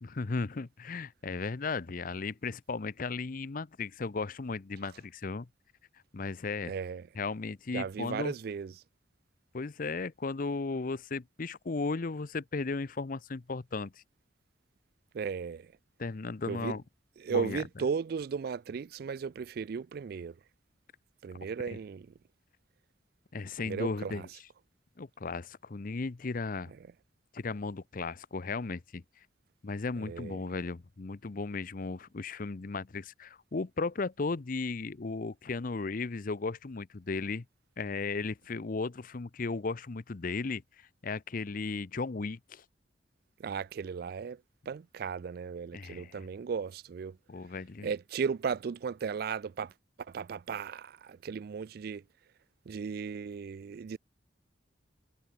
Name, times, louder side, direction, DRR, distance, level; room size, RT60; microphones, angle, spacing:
voice 1, 0.0-5.5 6.1-6.7 7.1-8.3 9.5-13.9 16.0-16.8 17.3-17.6 21.7-21.8 23.3-24.3 25.0-26.7 27.3-29.0 29.6-37.4 37.8-42.6 45.7-46.3 47.3-47.9, left 4 dB, 50° left, 0.6 m, -35 dB
voice 2, 6.7-7.1 7.7-8.7 15.1-15.7 16.5-16.8 17.2-20.3 21.2-22.1 23.6-24.3 30.1-30.4 43.4-44.4 44.7-47.2 47.8-49.7 50.1-52.0 52.7-54.0, right 6 dB, 55° right, 0.3 m, -35 dB
head